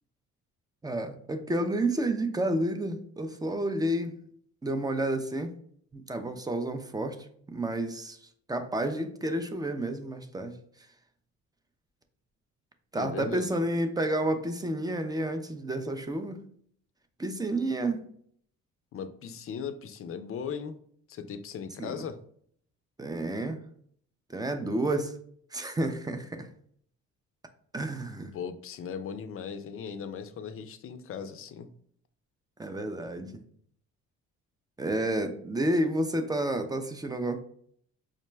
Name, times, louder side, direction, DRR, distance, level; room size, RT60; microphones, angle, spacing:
voice 1, 0.8-4.2 4.6-5.5 5.9-10.6 12.9-16.4 17.2-18.1 21.8-22.0 23.0-23.6 24.3-25.2 25.5-26.5 27.7-28.3 32.6-33.4 34.8-37.4, right 1 dB, 15° right, 7 dB, 0.4 m, -30 dB
voice 2, 13.0-13.5 18.9-20.8 21.1-22.2 28.3-31.7, left 6 dB, 45° left, 10 dB, 0.4 m, -38 dB
4.9 x 2.1 x 3.2 m, 0.62 s
cardioid pair, 90°, 30 cm